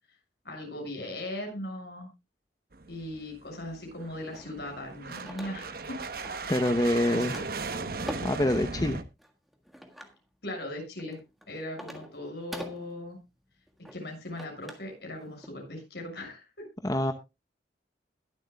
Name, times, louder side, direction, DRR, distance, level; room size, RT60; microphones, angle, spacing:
voice 1, 0.4-2.1 2.9-6.0 6.4-6.5 7.0-7.5 10.4-11.2 11.5-13.2 13.9-16.4, left 1 dB, 65° left, 1 dB, 6.7 m, -39 dB
sound 1, 2.7-9.0, right 4 dB, 55° right, 1.0 m, -37 dB
sound 2, 4.3-5.9 6.2-6.8 7.1-8.5 9.2-10.2 10.8-14.9 15.2-15.5, equal, ahead, 1.6 m, -44 dB
voice 2, 6.5-7.3 8.2-9.0 16.8-17.1, left 1 dB, 20° left, 7 dB, 0.8 m, -25 dB
21.5 x 7.9 x 2.3 m, 0.25 s
head